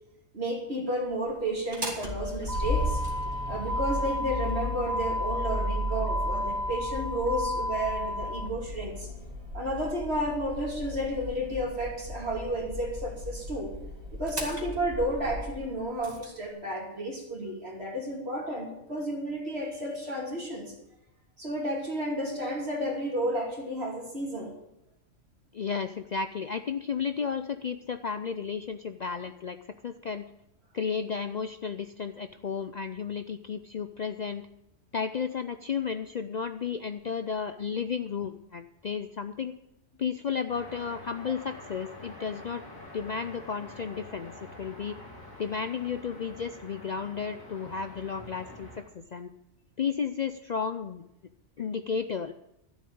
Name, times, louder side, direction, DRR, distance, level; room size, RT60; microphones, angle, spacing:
voice 1, 0.3-3.0 3.5-9.1 9.5-13.7 14.1-20.7 21.4-24.5, right 1 dB, 55° right, -1 dB, 2.9 m, -32 dB
Motor vehicle (road), 1.6-16.3, left 1 dB, 30° right, 2.5 m, -33 dB
voice 2, 25.5-29.6 29.8-30.3 30.7-34.4 34.9-39.6 40.0-44.3 44.6-45.0 45.4-49.3 49.8-51.0 51.6-52.3, left 6 dB, 50° left, 9 dB, 0.5 m, -33 dB
sound 1, 40.5-48.8, left 1 dB, 15° left, 3.4 m, -46 dB
12.5 x 7.3 x 8.7 m, 0.84 s
omnidirectional pair, 1.3 m